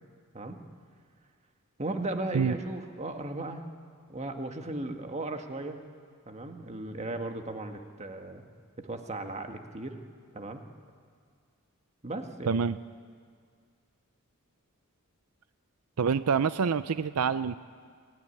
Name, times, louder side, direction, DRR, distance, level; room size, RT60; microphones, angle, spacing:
voice 1, 1.8-3.6 4.1-5.8 6.3-8.4 8.8-10.0 10.3-10.6 12.0-12.6, right 2 dB, 30° right, 5 dB, 1.7 m, -36 dB
voice 2, 12.5-12.8 16.0-17.6, right 6 dB, 85° right, 14 dB, 0.5 m, -26 dB
27.0 x 16.5 x 9.9 m, 2.1 s
head